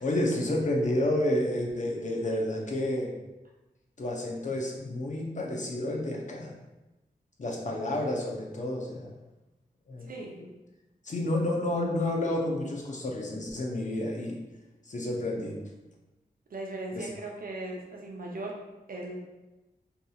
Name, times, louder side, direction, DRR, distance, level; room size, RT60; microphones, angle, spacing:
voice 1, 0.0-3.1 4.0-6.5 7.4-9.1 9.9-10.1 10.4-10.5 11.0-14.4 14.8-15.6 16.9-17.1, left 1 dB, 50° left, -1 dB, 0.6 m, -30 dB
voice 2, 10.0-10.4 16.5-18.5 18.9-19.2, right 2 dB, 60° right, -1 dB, 0.6 m, -38 dB
2.8 x 2.7 x 2.3 m, 1.0 s
cardioid pair, 45°, 16 cm